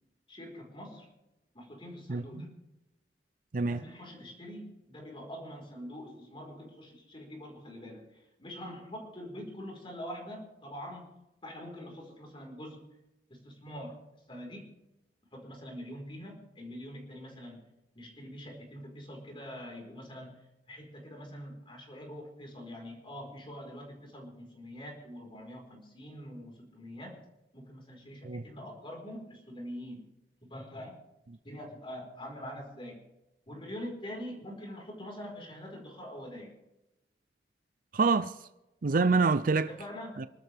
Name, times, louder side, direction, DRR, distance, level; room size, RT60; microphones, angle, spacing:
voice 1, 0.3-1.1 1.5-2.6 3.5-12.9 13.3-14.0 14.3-14.7 15.3-17.6 17.9-27.2 27.5-30.0 30.4-31.0 31.4-33.0 33.5-36.6 39.7-40.2, equal, 30° left, 4.6 m, -44 dB
voice 2, 37.9-38.4 38.8-39.7 40.2-40.3, right 4 dB, 50° right, 0.5 m, -26 dB
27.0 x 12.5 x 3.5 m
head